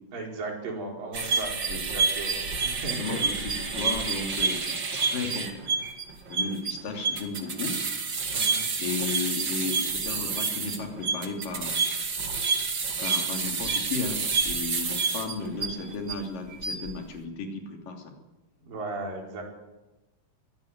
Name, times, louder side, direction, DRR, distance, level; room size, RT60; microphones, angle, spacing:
voice 1, 0.1-3.5 8.3-8.6 18.6-19.4, right 2 dB, 80° right, 0 dB, 6.4 m, -36 dB
sound 1, 1.1-16.1 16.5-16.9, right 4 dB, 35° right, 2.5 m, -28 dB
voice 2, 2.9-5.5 6.3-7.8 8.8-11.9 13.0-18.1, left 4 dB, 75° left, 2 dB, 4.8 m, -34 dB
22.5 x 16.0 x 9.5 m, 1.1 s
omnidirectional pair, 3.9 m